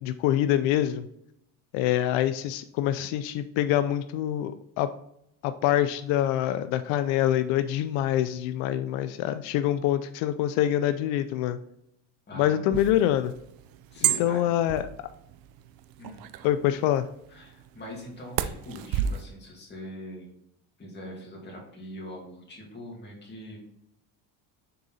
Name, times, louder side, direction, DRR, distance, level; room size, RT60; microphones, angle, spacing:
voice 1, 0.0-1.1 1.7-4.9 5.4-11.6 12.4-13.3 14.0-14.9 16.4-17.1, left 12 dB, 85° left, 11 dB, 0.5 m, -25 dB
voice 2, 12.3-12.6 13.9-14.5 16.0-16.3 17.3-20.3 20.8-23.6, equal, 25° left, -2 dB, 2.2 m, -42 dB
sound 1, 12.7-19.2, right 10 dB, 55° right, 0.5 m, -33 dB
6.7 x 3.9 x 4.0 m, 0.76 s
cardioid pair, 140°, 44 cm